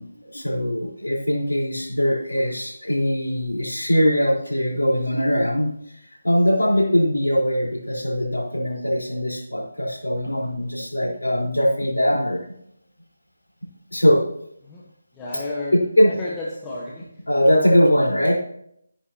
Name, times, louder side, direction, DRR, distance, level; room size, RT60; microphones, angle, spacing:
voice 1, 0.0-12.4 13.9-14.2 15.7-16.1 17.3-18.4, equal, 80° left, -3 dB, 4.2 m, -21 dB
voice 2, 15.1-15.8 16.1-17.2, left 2 dB, 15° left, -5 dB, 1.3 m, -32 dB
13.0 x 10.0 x 2.9 m, 0.73 s
figure-of-eight pair, 155°, 0 cm